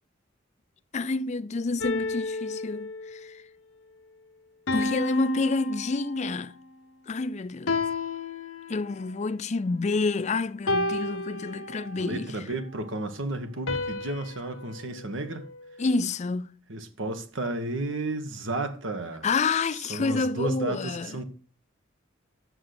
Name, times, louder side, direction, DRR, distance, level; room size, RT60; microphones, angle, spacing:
voice 1, 0.9-3.4 4.7-6.6 7.1-7.7 8.7-12.4 15.8-16.5 19.2-21.2, left 3 dB, 35° left, 0.4 m, -28 dB
sound 1, 1.8-3.3 4.7-6.5 7.7-9.1 10.7-12.1 13.7-15.9, left 2 dB, 80° left, 1.0 m, -32 dB
voice 2, 11.9-15.4 16.7-19.3 19.9-21.2, right 2 dB, 75° right, 1.4 m, -32 dB
7.7 x 6.6 x 5.9 m
head